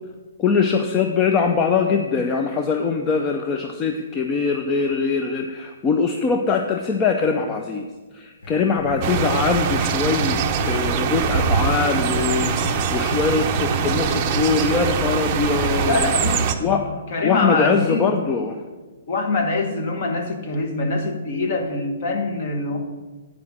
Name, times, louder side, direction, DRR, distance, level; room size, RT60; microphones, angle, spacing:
voice 1, 0.4-7.9 8.1-16.1 16.6-18.6, left 5 dB, 15° left, 4 dB, 0.4 m, -22 dB
sound 1, 8.4-15.9, left 1 dB, 70° left, 2.7 m, -32 dB
sound 2, 9.0-16.5, right 7 dB, 25° right, 0.6 m, -23 dB
voice 2, 15.8-16.5 17.1-18.2 19.1-22.8, left 3 dB, 40° left, 4 dB, 1.3 m, -24 dB
9.5 x 4.9 x 7.2 m, 1.3 s
hypercardioid pair, 170°, 0 cm